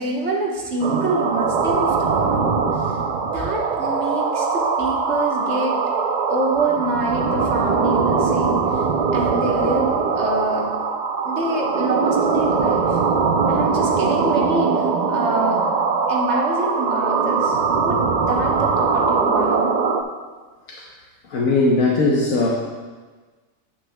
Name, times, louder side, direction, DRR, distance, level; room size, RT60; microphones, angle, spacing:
voice 1, 0.0-3.0 3.3-5.8 6.3-8.9 9.1-10.7 11.2-13.0 13.5-15.7 16.1-18.0 18.3-19.7, right 2 dB, 55° right, -2 dB, 1.4 m, -26 dB
sound 1, 0.8-20.0, right 5 dB, 85° right, 0.4 m, -21 dB
voice 2, 21.3-22.5, left 3 dB, 80° left, -3 dB, 1.3 m, -19 dB
9.8 x 8.3 x 2.2 m, 1.4 s
omnidirectional pair, 1.4 m